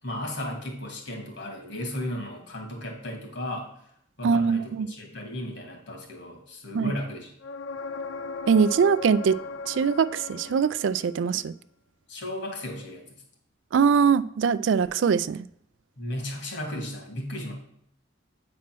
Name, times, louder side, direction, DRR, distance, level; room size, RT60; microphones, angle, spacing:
voice 1, 0.0-3.7 4.2-7.3 12.1-13.2 16.0-17.5, left 1 dB, 65° left, 2.2 m, -35 dB
voice 2, 4.2-4.9 6.7-6.9 8.5-9.3 9.7-11.5 13.7-15.5, right 6 dB, 70° right, 0.3 m, -22 dB
sound 1, 7.4-11.2 14.9-15.0, left 4 dB, 80° left, 0.5 m, -37 dB
8.6 x 4.3 x 6.0 m
head